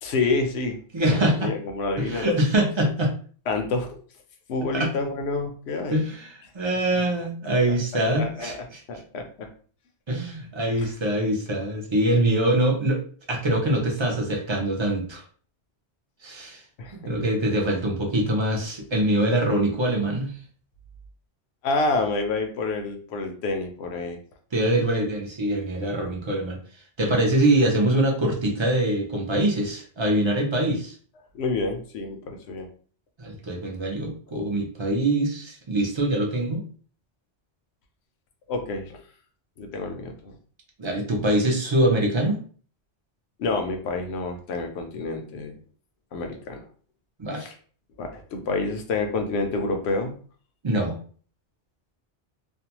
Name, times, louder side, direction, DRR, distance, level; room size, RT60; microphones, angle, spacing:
voice 1, 0.0-0.8 1.0-2.3 3.5-4.0 4.5-6.0 6.9-7.0 7.7-8.5 8.9-9.5 10.7-10.9 16.8-17.1 21.6-24.2 31.3-32.7 38.5-39.0 39.6-40.4 43.4-45.6 46.1-46.7 47.4-47.5 48.0-50.1, left 3 dB, 70° left, 5 dB, 0.8 m, -28 dB
voice 2, 0.9-1.5 2.0-3.1 4.7-4.9 5.9-8.8 10.1-13.0 13.3-15.2 16.2-16.6 16.9-20.3 24.5-26.6 27.0-30.9 33.2-36.6 40.8-42.4 47.2-47.5 50.6-51.0, right 1 dB, 40° right, 1 dB, 0.4 m, -24 dB
2.5 x 2.2 x 2.8 m, 0.43 s
omnidirectional pair, 1.2 m